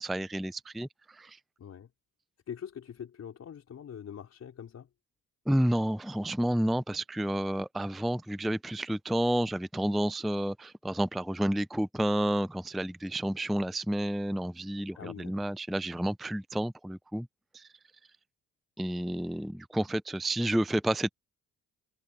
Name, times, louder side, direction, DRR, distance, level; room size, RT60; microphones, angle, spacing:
voice 1, 0.0-1.4 5.5-17.3 17.5-17.7 18.8-21.1, right 1 dB, ahead, 0.4 m, -30 dB
voice 2, 1.6-1.9 2.5-4.9 14.9-15.5, left 8 dB, 55° left, 4.7 m, -43 dB
cardioid pair, 90°, 30 cm